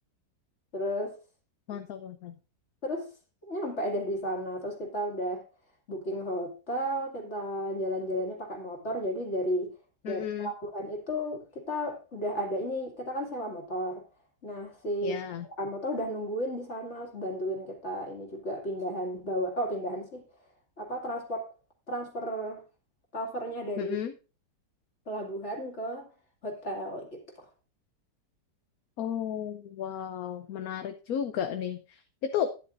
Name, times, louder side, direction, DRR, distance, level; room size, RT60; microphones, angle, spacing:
voice 1, 0.7-1.2 2.8-3.1 3.4-5.4 5.9-9.7 10.0-14.0 14.4-15.2 15.6-20.2 20.8-21.4 21.9-22.6 23.1-24.0 25.1-26.1 26.4-27.5, equal, 40° left, 2.5 m, -33 dB
voice 2, 1.7-2.4 10.0-10.5 15.0-15.4 23.8-24.1 29.0-32.5, left 9 dB, 65° left, 1.1 m, -33 dB
12.0 x 10.0 x 2.6 m
omnidirectional pair, 1.9 m